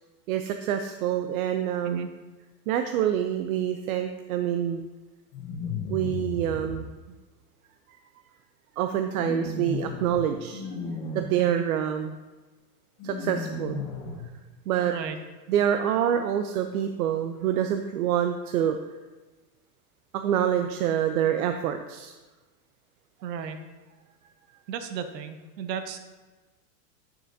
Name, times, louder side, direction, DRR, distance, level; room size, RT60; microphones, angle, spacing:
voice 1, 0.3-2.1 2.7-4.9 5.9-6.8 8.8-10.6 11.1-12.2 13.0-13.8 14.7-14.9 15.5-18.8 20.1-22.1, right 10 dB, 60° right, 7 dB, 0.5 m, -26 dB
sound 1, 5.3-6.7 9.1-10.2 10.5-11.2 13.0-14.2, left 3 dB, 35° left, 1.1 m, -34 dB
voice 2, 14.9-15.2 23.2-23.6 24.7-26.0, right 7 dB, 80° right, 8 dB, 0.9 m, -34 dB
8.6 x 6.8 x 2.7 m, 1.3 s
supercardioid pair, 150°, 49 cm